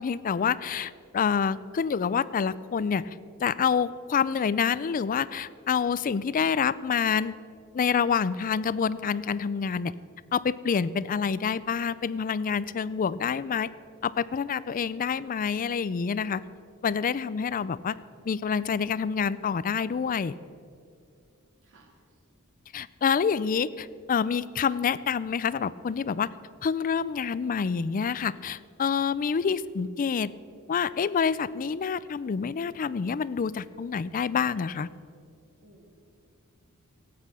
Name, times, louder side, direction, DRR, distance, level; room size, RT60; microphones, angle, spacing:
voice 1, 0.0-7.4 7.7-9.9 10.3-13.7 14.0-16.4 16.8-18.0 18.3-20.3 22.7-26.3 26.6-30.3 30.7-34.9, left 6 dB, 40° left, 18 dB, 0.4 m, -27 dB
voice 2, 21.6-22.2 35.6-35.9, right 2 dB, 60° right, 0 dB, 2.2 m, -58 dB
17.0 x 8.7 x 6.1 m, 2.3 s
head